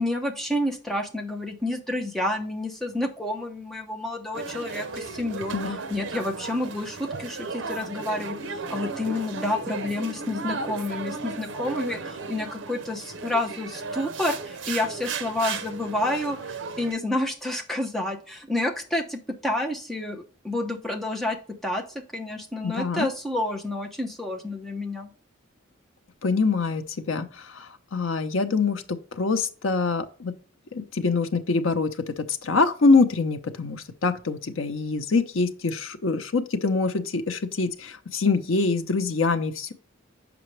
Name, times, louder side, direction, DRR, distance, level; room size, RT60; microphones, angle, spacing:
voice 1, 0.0-5.6 5.9-21.4 21.6-25.1, left 1 dB, ahead, 0 dB, 0.9 m, -29 dB
sound 1, 4.3-16.9, right 4 dB, 70° right, 0.7 m, -35 dB
voice 2, 22.6-23.1 26.2-30.3 30.7-39.7, left 4 dB, 85° left, 9 dB, 0.7 m, -25 dB
6.8 x 5.0 x 3.2 m, 0.39 s
head